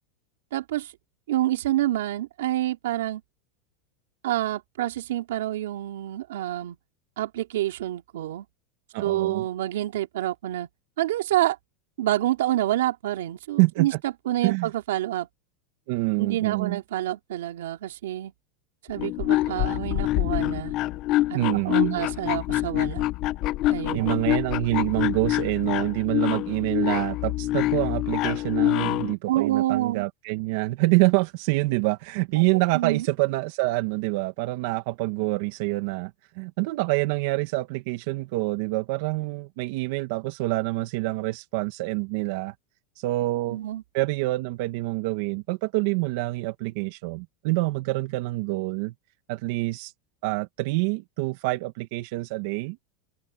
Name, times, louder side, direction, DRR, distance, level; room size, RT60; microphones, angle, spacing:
voice 1, 0.5-0.9 1.3-3.2 4.2-6.8 7.2-8.4 9.0-10.7 11.0-11.6 12.0-15.3 16.2-18.3 18.9-20.7 21.3-21.4 21.6-23.0 23.7-24.1 29.3-30.0 32.7-33.0 43.5-43.8, right 14 dB, 90° right, 3.2 m, -27 dB
voice 2, 8.9-9.5 13.6-14.0 14.4-14.7 15.9-16.8 21.3-22.0 23.9-42.5 43.0-43.6 43.9-48.9 49.3-49.9 50.2-52.8, right 22 dB, 60° right, 2.3 m, -26 dB
sound 1, 18.9-29.1, left 16 dB, 45° left, 1.3 m, -26 dB
supercardioid pair, 145°, 0 cm